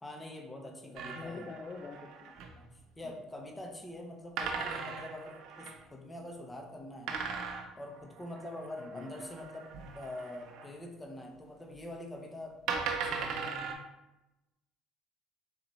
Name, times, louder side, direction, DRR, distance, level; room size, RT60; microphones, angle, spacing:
voice 1, 0.0-1.5 2.6-7.2 7.7-13.7, left 1 dB, 15° left, 1 dB, 0.8 m, -45 dB
voice 2, 0.8-2.3 8.8-9.1, left 4 dB, 40° left, 2 dB, 0.4 m, -45 dB
sound 1, 1.0-2.7 4.4-5.8 7.1-10.7 11.8-11.9 12.7-13.8, right 5 dB, 70° right, 0.5 m, -39 dB
3.9 x 3.0 x 3.1 m, 0.97 s
supercardioid pair, 80°, 0 cm